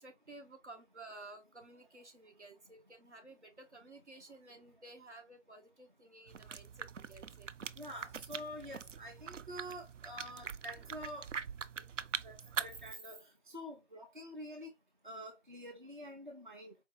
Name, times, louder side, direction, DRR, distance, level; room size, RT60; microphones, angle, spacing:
voice 1, 0.0-7.5, right 2 dB, 70° right, 1.4 m, -54 dB
sound 1, 6.3-12.9, right 7 dB, 85° right, 0.5 m, -43 dB
voice 2, 7.8-11.3 12.2-14.7 15.0-16.7, equal, 45° right, 0.7 m, -47 dB
4.6 x 2.7 x 2.4 m
figure-of-eight pair, 170°, 36 cm